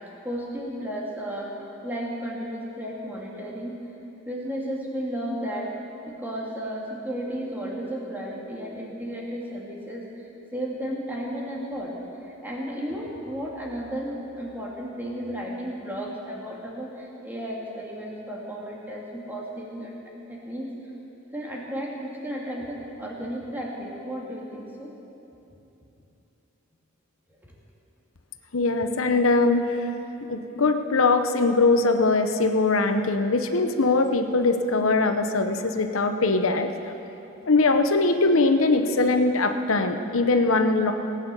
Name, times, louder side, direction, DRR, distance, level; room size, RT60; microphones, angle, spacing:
voice 1, 0.2-1.5 1.8-3.8 4.3-5.7 6.1-12.0 12.2-19.9 20.3-20.7 21.3-24.9 27.3-27.4, equal, 10° right, -3 dB, 2.3 m, -33 dB
voice 2, 28.5-29.8 30.3-36.7 37.5-40.9, left 3 dB, 85° left, 7 dB, 0.9 m, -21 dB
17.5 x 9.5 x 6.9 m, 2.9 s
head